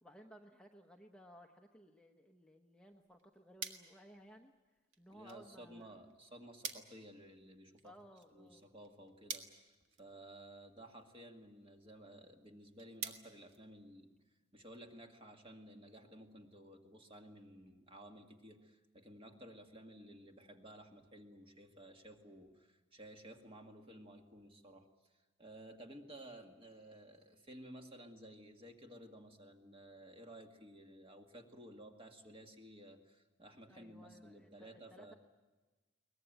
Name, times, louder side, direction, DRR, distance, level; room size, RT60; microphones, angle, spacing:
voice 1, 0.0-4.5 5.0-5.9 7.8-8.6 33.7-35.1, equal, 5° left, 3 dB, 0.9 m, -59 dB
sound 1, 2.9-14.3, right 6 dB, 70° right, 1.8 m, -52 dB
voice 2, 5.1-7.9 8.3-9.7 10.0-14.2 14.5-35.2, right 1 dB, 25° right, 4 dB, 1.9 m, -55 dB
22.5 x 19.5 x 9.1 m, 1.2 s
head